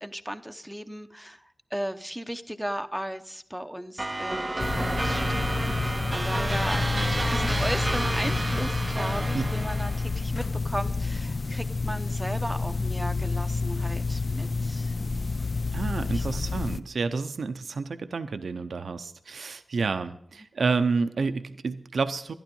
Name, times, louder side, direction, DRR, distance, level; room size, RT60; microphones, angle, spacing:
voice 1, 0.0-6.8 7.1-14.9 16.1-16.5, equal, 5° right, 8 dB, 0.8 m, -36 dB
sound 1, 4.0-10.2, right 2 dB, 30° right, 0.5 m, -31 dB
sound 2, 4.6-16.8, left 3 dB, 55° left, 0.5 m, -29 dB
voice 2, 15.7-22.3, right 4 dB, 80° right, 10 dB, 0.6 m, -29 dB
12.0 x 11.0 x 5.3 m, 0.66 s
cardioid pair, 55°, 0 cm